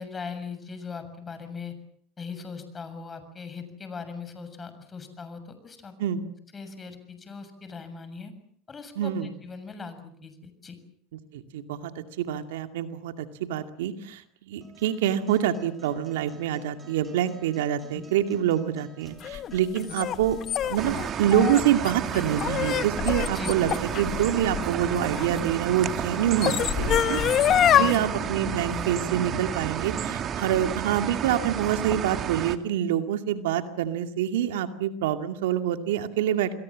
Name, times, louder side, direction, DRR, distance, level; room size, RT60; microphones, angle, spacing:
voice 1, 0.0-1.8 2.2-5.9 6.5-8.3 8.7-10.8 17.9-18.0 19.9-20.0 23.3-23.6 27.6-28.0, left 5 dB, 25° left, 10 dB, 7.0 m, -40 dB
voice 2, 9.0-9.3 11.3-20.4 20.6-36.5, right 10 dB, 85° right, 8 dB, 2.3 m, -26 dB
sound 1, 14.6-30.6, right 1 dB, 20° right, 7.1 m, -48 dB
sound 2, 19.2-25.4 26.1-28.0, left 10 dB, 45° left, 1.4 m, -25 dB
sound 3, 20.8-32.6, right 9 dB, 40° right, 2.2 m, -31 dB
28.5 x 22.0 x 7.5 m, 0.63 s
supercardioid pair, 100°, 0 cm